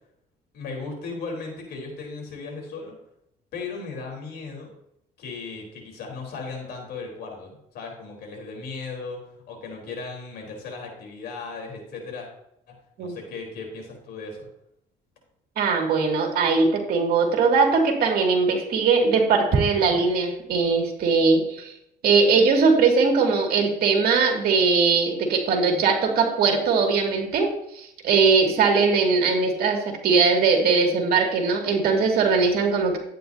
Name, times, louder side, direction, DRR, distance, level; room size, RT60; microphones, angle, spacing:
voice 1, 0.5-2.9 3.5-4.7 5.2-9.2 9.5-12.3 13.0-14.5, left 4 dB, 75° left, 1 dB, 3.9 m, -36 dB
voice 2, 15.6-21.7 22.0-27.5 27.7-33.0, right 4 dB, 65° right, 1 dB, 2.4 m, -20 dB
12.0 x 9.2 x 2.8 m, 0.79 s
cardioid pair, 110°, 17 cm